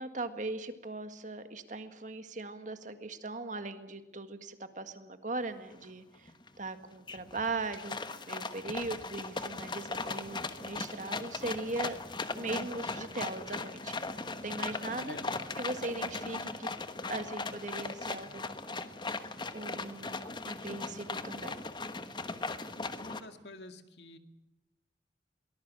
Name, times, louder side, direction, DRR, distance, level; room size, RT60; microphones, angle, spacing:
voice 1, 0.0-6.3 6.6-8.0 8.3-12.0 12.3-15.2 15.6-16.7 17.1-18.5 19.5-21.5, right 3 dB, 45° right, 9 dB, 1.8 m, -39 dB
sound 1, 5.8-5.9 6.3-6.7 7.1-23.2, left 3 dB, 25° left, 1.2 m, -38 dB
voice 2, 15.0-15.4 22.8-24.2, left 2 dB, 75° left, 7 dB, 2.1 m, -49 dB
23.0 x 19.5 x 7.6 m, 0.94 s
head